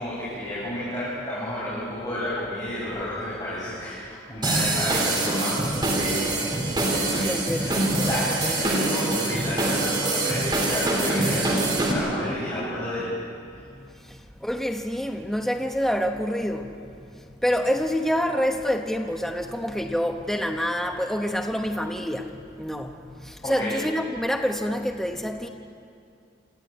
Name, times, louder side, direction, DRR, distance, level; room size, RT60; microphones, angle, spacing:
voice 1, 0.0-5.6 6.0-6.5 6.9-7.3 7.5-13.1 23.4-23.7, left 1 dB, 20° left, -9 dB, 6.7 m, -31 dB
sound 1, 4.4-11.9, right 2 dB, 25° right, 3.4 m, -24 dB
voice 2, 7.2-7.9 14.1-16.7 17.4-22.3 22.6-25.5, equal, ahead, 3 dB, 1.1 m, -27 dB
27.5 x 13.5 x 9.3 m, 2.3 s
head